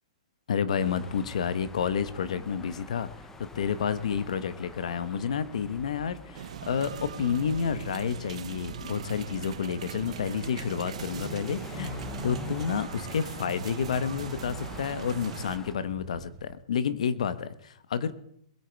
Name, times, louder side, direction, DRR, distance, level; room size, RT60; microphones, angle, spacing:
voice 1, 0.5-3.1 3.4-18.1, left 7 dB, 70° left, 14 dB, 1.2 m, -30 dB
sound 1, 0.8-15.7, left 3 dB, 10° left, 0.8 m, -45 dB
sound 2, 6.3-15.6, right 9 dB, 65° right, 0.9 m, -40 dB
sound 3, 6.5-16.5, equal, 25° right, 4.1 m, -49 dB
21.0 x 8.4 x 4.6 m, 0.71 s
hypercardioid pair, 160°, 4 cm